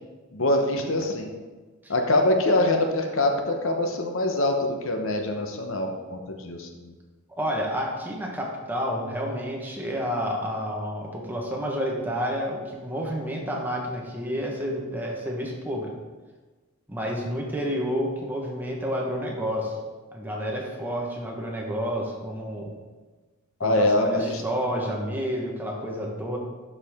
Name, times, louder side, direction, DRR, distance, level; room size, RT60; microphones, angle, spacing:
voice 1, 0.3-1.3 1.9-6.9 23.6-24.4, left 1 dB, 60° left, 3 dB, 0.9 m, -24 dB
voice 2, 7.4-15.9 16.9-19.8 20.1-22.7 23.6-26.4, equal, 10° right, -2 dB, 1.1 m, -30 dB
11.5 x 4.9 x 3.6 m, 1.3 s
head